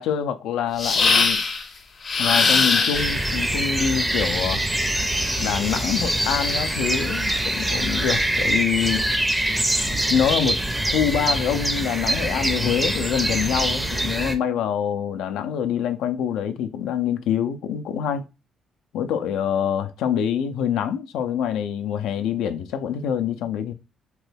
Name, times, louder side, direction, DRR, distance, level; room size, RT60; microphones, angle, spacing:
voice 1, 0.0-1.4 2.2-4.7 5.4-9.1 9.9-10.6 10.9-18.3 18.9-23.7, left 8 dB, 90° left, 0.3 m, -25 dB
sound 1, 0.8-1.6 2.0-3.3 5.0-6.9, left 4 dB, 45° left, 0.6 m, -23 dB
sound 2, 2.9-14.3, right 1 dB, 10° right, 0.4 m, -24 dB
2.9 x 2.2 x 3.2 m
cardioid pair, 90°, 0 cm